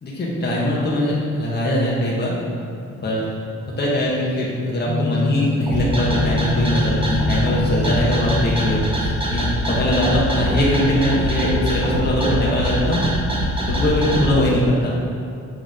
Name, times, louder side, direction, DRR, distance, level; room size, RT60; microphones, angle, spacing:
voice 1, 0.0-2.3 3.0-3.3 3.6-13.0 13.7-15.0, equal, 35° left, -5 dB, 1.6 m, -21 dB
sound 1, 4.9-9.2, left 4 dB, 45° right, 1.1 m, -25 dB
sound 2, 5.7-14.3, equal, 20° right, 1.4 m, -23 dB
7.6 x 4.9 x 3.7 m, 2.4 s
cardioid pair, 90°, 30 cm